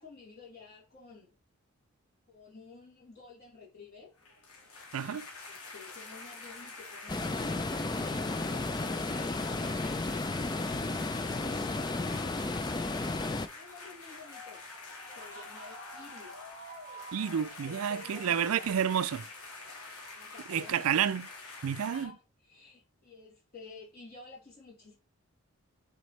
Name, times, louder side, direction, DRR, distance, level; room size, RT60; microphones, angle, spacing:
voice 1, 0.0-1.3 2.3-4.1 5.4-10.2 11.2-13.0 13.5-14.6 15.2-16.3 17.3-18.8 20.1-21.0 21.7-25.0, left 4 dB, 45° left, 3.8 m, -52 dB
sound 1, 4.2-22.0, left 2 dB, 80° left, 1.9 m, -46 dB
voice 2, 4.9-5.3 17.1-19.2 20.5-21.3 21.6-22.1, right 8 dB, 80° right, 0.4 m, -30 dB
sound 2, 7.1-13.5, left 2 dB, 20° left, 0.4 m, -33 dB
8.0 x 4.2 x 3.2 m
head